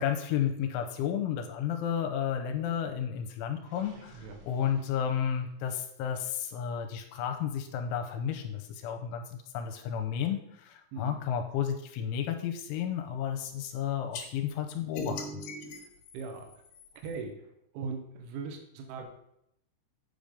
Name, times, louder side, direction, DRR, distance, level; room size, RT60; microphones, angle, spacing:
voice 1, 0.0-15.4, left 8 dB, 85° left, 5 dB, 3.0 m, -32 dB
Gurgling, 3.6-5.7, right 2 dB, 40° right, 1.6 m, -55 dB
sound 1, 14.1-14.3 15.0-17.2, left 2 dB, 70° left, 2.6 m, -40 dB
voice 2, 16.1-16.5 17.0-17.5 17.7-19.1, right 4 dB, 85° right, 4 dB, 3.4 m, -39 dB
8.6 x 5.1 x 5.2 m, 0.77 s
omnidirectional pair, 5.5 m